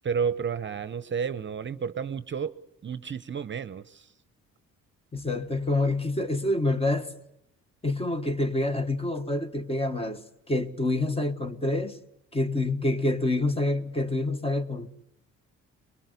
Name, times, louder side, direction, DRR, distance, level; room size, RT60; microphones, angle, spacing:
voice 1, 0.0-4.1, right 6 dB, 40° right, 0.8 m, -31 dB
voice 2, 5.1-7.1 7.8-10.2 10.5-12.0 12.3-14.9, left 2 dB, 20° left, 1.5 m, -27 dB
22.5 x 21.5 x 8.2 m
cardioid pair, 90°, 30 cm